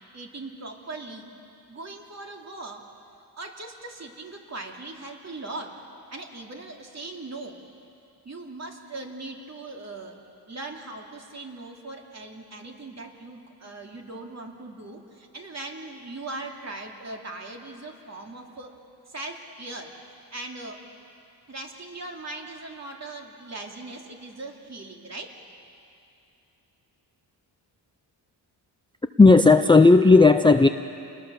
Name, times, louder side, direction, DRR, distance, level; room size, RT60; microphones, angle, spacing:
voice 1, 0.1-1.3 1.7-2.8 3.4-5.7 6.1-7.6 8.2-10.2 10.5-18.7 19.1-19.9 20.3-20.8 21.5-25.3, right 2 dB, 40° right, 1 dB, 2.7 m, -39 dB
voice 2, 29.2-30.7, left 3 dB, 10° left, 7 dB, 0.5 m, -13 dB
29.5 x 20.5 x 7.0 m, 2.6 s
wide cardioid pair, 115°, 42 cm